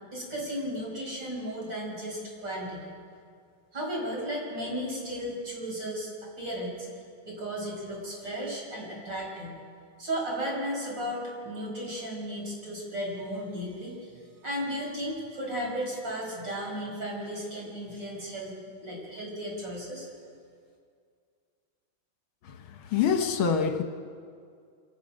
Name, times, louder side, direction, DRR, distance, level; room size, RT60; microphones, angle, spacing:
voice 1, 0.1-2.9 3.7-6.1 6.4-6.9 7.3-9.6 10.0-14.1 14.4-20.1, equal, 55° right, 6.2 m, -35 dB
voice 2, 22.4-23.8, left 6 dB, 70° left, 1.8 m, -26 dB
25.5 x 17.0 x 6.4 m
omnidirectional pair, 2.4 m